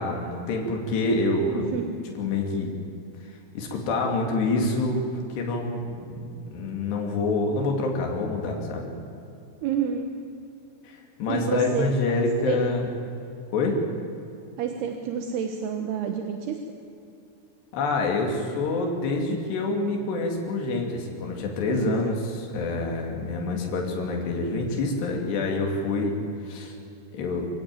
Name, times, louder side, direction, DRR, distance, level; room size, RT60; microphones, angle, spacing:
voice 1, 0.0-1.7 2.2-2.7 3.3-8.9 10.8-12.9 13.5-13.8 17.7-26.1 26.5-26.7 27.1-27.5, left 3 dB, 80° left, 1 dB, 4.7 m, -27 dB
voice 2, 1.5-2.0 9.6-10.1 11.3-11.9 12.5-12.7 14.6-16.6 21.7-22.0, right 7 dB, 75° right, 5 dB, 3.2 m, -29 dB
25.0 x 16.0 x 9.1 m, 2.7 s
omnidirectional pair, 4.8 m